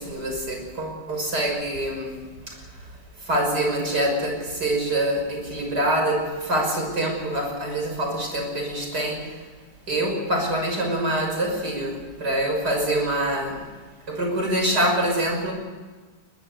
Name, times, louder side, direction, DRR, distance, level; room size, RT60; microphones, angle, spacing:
voice 1, 0.0-2.9 3.2-9.5 9.9-13.7 14.1-15.5, right 1 dB, 70° right, 2 dB, 6.8 m, -25 dB
22.0 x 21.0 x 8.2 m, 1.4 s
omnidirectional pair, 1.8 m